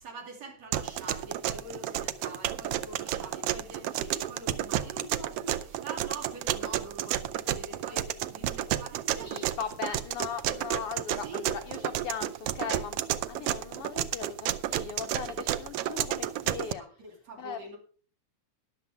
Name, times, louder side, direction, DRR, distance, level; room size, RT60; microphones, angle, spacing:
voice 1, 0.0-9.5 9.8-10.0 11.1-11.5 16.8-17.8, right 2 dB, 60° right, 1 dB, 3.8 m, -44 dB
sound 1, 0.7-16.7, right 12 dB, 90° right, 1.3 m, -31 dB
voice 2, 9.2-13.0 13.3-16.8 17.4-17.6, left 7 dB, 85° left, 7 dB, 1.2 m, -38 dB
13.5 x 11.0 x 3.6 m, 0.42 s
omnidirectional pair, 3.4 m